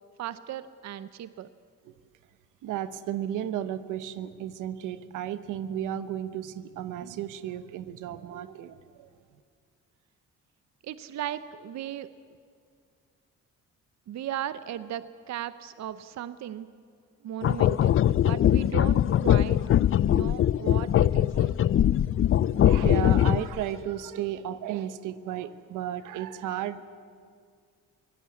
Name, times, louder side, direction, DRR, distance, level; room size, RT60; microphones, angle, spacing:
voice 1, 0.2-1.5 10.8-12.1 14.1-16.7 17.2-18.0 18.2-19.6 20.1-21.5, right 11 dB, 65° right, 14 dB, 0.7 m, -36 dB
voice 2, 2.6-9.1 22.5-26.8, right 11 dB, 90° right, 13 dB, 1.0 m, -34 dB
sound 1, 17.4-23.6, left 11 dB, 45° left, 0.5 m, -22 dB
24.5 x 17.0 x 8.5 m, 2.2 s
cardioid pair, 90°, 30 cm